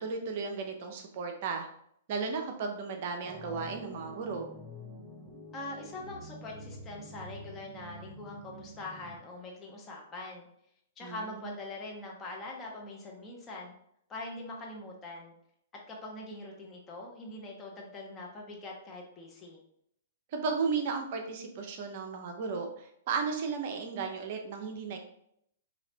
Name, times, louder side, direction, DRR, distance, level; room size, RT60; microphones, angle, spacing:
voice 1, 0.0-1.7 2.1-4.5 11.0-11.5 20.3-25.0, right 5 dB, 50° right, 4 dB, 0.7 m, -34 dB
sound 1, 3.2-9.2, left 1 dB, 10° right, 0.9 m, -47 dB
voice 2, 5.5-10.5 11.0-13.7 14.1-15.3 15.9-19.6, left 2 dB, 20° left, -2 dB, 1.2 m, -43 dB
5.0 x 2.8 x 2.8 m, 0.71 s
hypercardioid pair, 120°, 0 cm